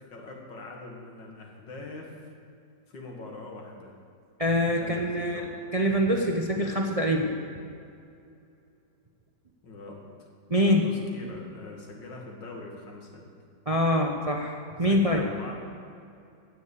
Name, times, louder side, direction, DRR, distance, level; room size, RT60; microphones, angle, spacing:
voice 1, 0.1-2.3 2.9-3.9 4.7-5.5 9.6-10.0 10.5-13.3 14.9-15.5, left 2 dB, 85° left, 0 dB, 2.6 m, -43 dB
voice 2, 4.4-5.5 5.7-7.3 10.5-10.8 13.7-15.2, equal, 35° right, 1 dB, 0.6 m, -24 dB
16.5 x 6.3 x 8.4 m, 2.5 s
omnidirectional pair, 1.9 m